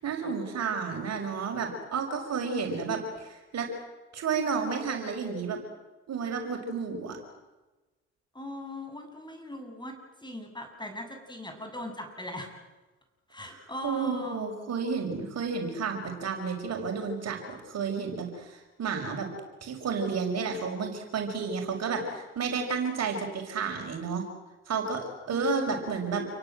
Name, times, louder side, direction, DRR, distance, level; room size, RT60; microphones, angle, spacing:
voice 1, 0.0-3.7 4.1-5.6 6.1-7.2 13.8-19.3 19.6-24.3 24.7-26.3, right 5 dB, 50° right, 3 dB, 6.1 m, -31 dB
voice 2, 8.3-9.9 10.2-12.5 13.3-14.4 25.3-25.8, left 1 dB, 15° left, 4 dB, 8.0 m, -39 dB
29.0 x 23.5 x 7.8 m, 1.1 s
hypercardioid pair, 50°, 33 cm